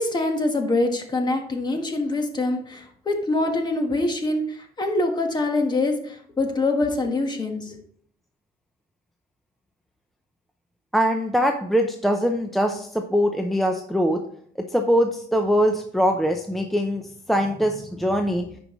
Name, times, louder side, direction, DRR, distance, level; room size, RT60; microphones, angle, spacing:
voice 1, 0.0-4.4 4.8-7.7, left 2 dB, 25° left, 4 dB, 1.4 m, -24 dB
voice 2, 10.9-14.2 14.7-17.0 17.3-18.5, equal, ahead, 4 dB, 0.6 m, -22 dB
9.7 x 5.3 x 3.1 m, 0.63 s
cardioid pair, 110°, 17 cm